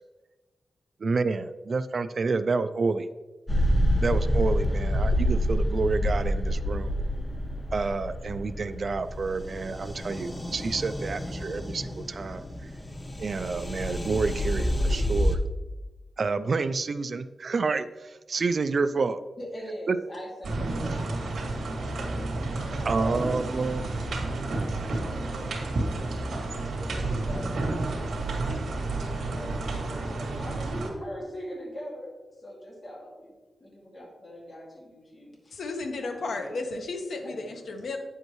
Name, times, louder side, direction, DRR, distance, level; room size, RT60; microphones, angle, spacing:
voice 1, 1.0-3.1 4.0-7.0 7.7-12.7 13.2-15.4 16.2-19.2 19.9-20.0 22.9-23.8, right 4 dB, 45° right, 0.3 m, -29 dB
sound 1, 3.5-15.4, equal, 15° left, 0.8 m, -28 dB
voice 2, 19.4-23.2 23.6-24.1 24.7-25.5 25.9-28.3 28.6-33.3 33.6-35.6 36.0-36.6 37.2-37.5, equal, 35° left, 2.2 m, -43 dB
sound 2, 20.4-30.9, right 2 dB, 75° right, 2.1 m, -31 dB
voice 3, 35.5-38.0, left 3 dB, 65° left, 1.0 m, -33 dB
9.0 x 7.9 x 3.1 m
wide cardioid pair, 160°, 0 cm